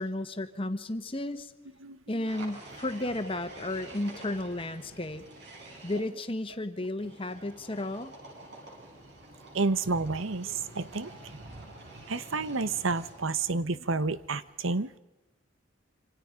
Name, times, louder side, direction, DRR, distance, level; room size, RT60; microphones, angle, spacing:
voice 1, 0.0-1.5 2.1-5.2 5.8-8.1, left 1 dB, 25° left, 9 dB, 1.4 m, -33 dB
voice 2, 1.8-2.3 9.5-11.1 12.1-15.0, right 3 dB, 85° right, 15 dB, 1.0 m, -30 dB
sound 1, 2.3-6.0 7.0-13.4, right 2 dB, 55° right, 7.7 m, -48 dB
26.5 x 26.5 x 5.2 m, 1.0 s
head